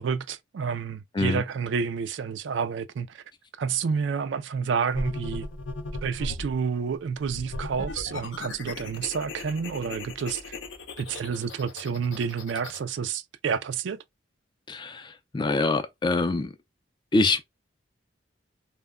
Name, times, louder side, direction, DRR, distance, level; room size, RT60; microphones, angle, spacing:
voice 1, 0.0-3.2 3.6-5.5 6.0-10.5 11.0-14.0, right 6 dB, 75° right, 0.4 m, -29 dB
sound 1, 4.9-6.5 7.2-12.8, left 2 dB, 75° left, 0.5 m, -37 dB
voice 2, 14.7-16.5 17.1-17.4, left 3 dB, 25° left, 0.3 m, -25 dB
2.1 x 2.1 x 3.5 m
head